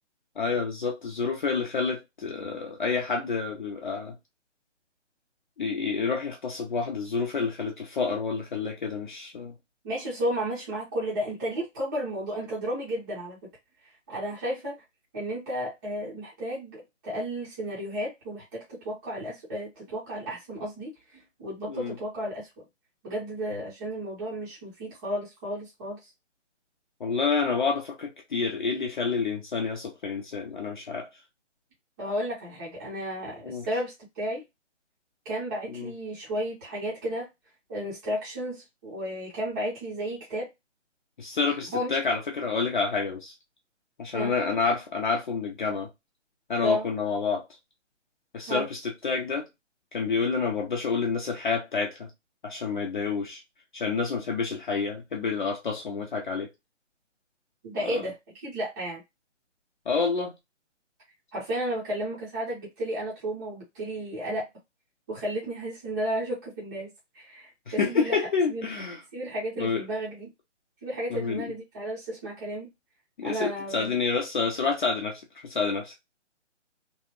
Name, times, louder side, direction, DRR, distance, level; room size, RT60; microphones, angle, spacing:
voice 1, 0.4-4.1 5.6-9.5 21.7-22.0 27.0-31.1 33.5-33.7 35.7-35.9 41.2-43.3 44.0-45.9 46.5-47.4 48.3-49.5 49.9-52.1 52.4-53.4 53.7-56.5 57.8-58.0 59.9-60.3 67.7-69.0 69.6-69.8 71.1-71.5 73.2-75.9, left 5 dB, 40° left, 0.7 m, -28 dB
voice 2, 9.8-13.4 13.8-14.8 15.1-22.6 23.0-26.1 32.0-34.4 35.2-37.3 37.7-40.5 41.7-41.9 44.1-44.3 46.6-46.9 48.5-48.6 57.6-59.0 61.3-64.5 65.1-68.2 68.5-68.6 69.1-70.3 70.8-72.7 73.2-73.9, equal, 15° right, 0.8 m, -33 dB
3.1 x 2.4 x 2.9 m
figure-of-eight pair, 145°, 37 cm